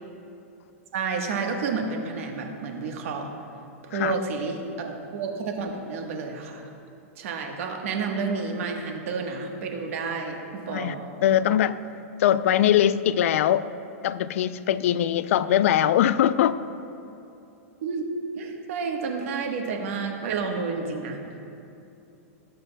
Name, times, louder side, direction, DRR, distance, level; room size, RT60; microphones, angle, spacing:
voice 1, 0.9-3.3 3.9-6.6 7.2-11.1 17.8-18.0 18.3-21.2, right 4 dB, 65° right, 3 dB, 1.2 m, -30 dB
voice 2, 11.2-11.8 12.2-13.6 14.0-16.6, left 11 dB, 70° left, 15 dB, 0.3 m, -21 dB
18.5 x 6.6 x 2.2 m, 2.8 s
hypercardioid pair, 140°, 8 cm